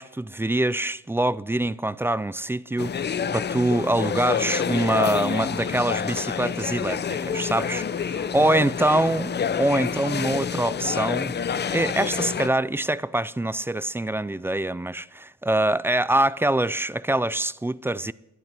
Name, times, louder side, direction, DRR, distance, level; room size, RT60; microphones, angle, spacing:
voice 1, 0.0-11.3 11.7-18.1, right 1 dB, 10° right, 0.3 m, -24 dB
sound 1, 2.8-12.5, left 7 dB, 35° left, 0.7 m, -28 dB
12.0 x 11.0 x 5.9 m
cardioid pair, 90°, 30 cm